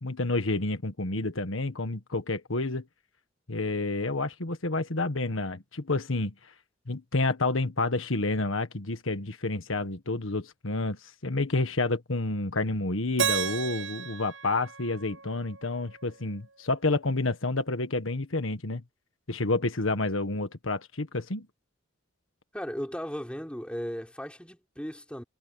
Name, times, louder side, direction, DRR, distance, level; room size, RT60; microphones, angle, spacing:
voice 1, 0.0-2.9 3.5-6.3 6.9-18.8 19.3-21.5, left 2 dB, 90° left, 1.6 m, -29 dB
Keyboard (musical), 13.2-16.2, right 7 dB, 80° right, 7.1 m, -33 dB
voice 2, 22.5-25.2, equal, 5° left, 3.9 m, -36 dB
head